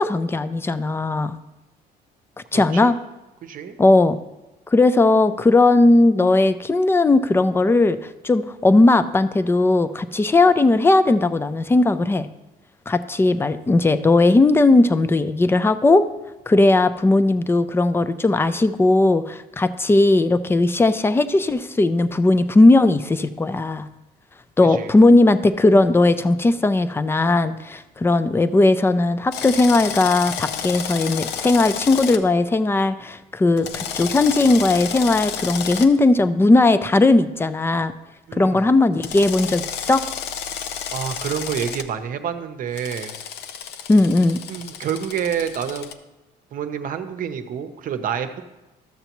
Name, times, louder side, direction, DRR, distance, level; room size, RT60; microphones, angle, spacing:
voice 1, 0.0-1.4 2.5-3.0 3.8-4.2 4.7-12.3 12.9-16.1 16.5-23.9 24.6-37.9 38.3-40.0 43.9-44.4, left 2 dB, 15° left, 12 dB, 0.4 m, -17 dB
voice 2, 2.5-2.9 3.4-3.8 24.6-25.0 38.3-38.7 40.9-43.2 44.5-45.9 46.5-48.4, right 8 dB, 55° right, 8 dB, 0.7 m, -28 dB
Drill, 29.3-32.2 33.6-35.9 39.0-41.8 42.8-45.9, left 8 dB, 85° left, 0.6 m, -31 dB
13.0 x 6.8 x 3.0 m, 1.0 s
cardioid pair, 110°, 17 cm